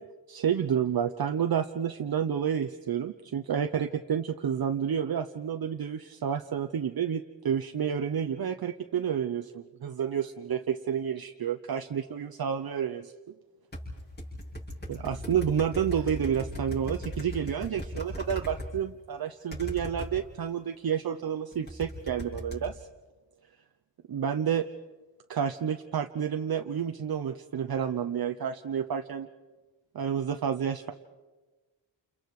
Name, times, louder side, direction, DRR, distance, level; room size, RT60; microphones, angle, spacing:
voice 1, 0.3-13.1 14.9-22.9 24.1-24.6 25.3-29.3 29.9-30.9, right 8 dB, 50° right, 6 dB, 0.8 m, -30 dB
sound 1, 13.7-18.7 19.5-20.1 21.5-22.7, equal, 20° left, 6.0 m, -37 dB
29.5 x 29.0 x 4.8 m, 1.3 s
wide cardioid pair, 165°, 45 cm